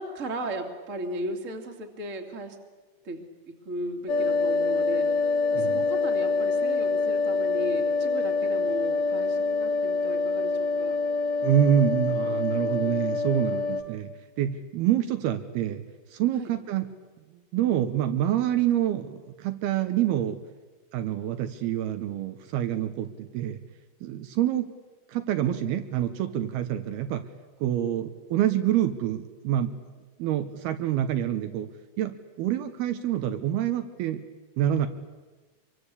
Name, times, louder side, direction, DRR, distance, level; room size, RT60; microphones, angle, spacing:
voice 1, 0.0-2.6 3.0-11.0 16.4-16.5, right 1 dB, 25° right, 4 dB, 2.0 m, -36 dB
sound 1, 4.1-13.8, left 3 dB, 60° left, 2.7 m, -26 dB
voice 2, 11.4-14.1 14.4-15.8 16.1-16.9 17.5-20.4 20.9-23.6 24.0-24.7 25.1-27.2 27.6-29.7 30.2-31.7 32.0-34.2 34.6-34.9, right 11 dB, 75° right, 9 dB, 2.8 m, -26 dB
25.0 x 23.5 x 8.3 m, 1.3 s
omnidirectional pair, 4.9 m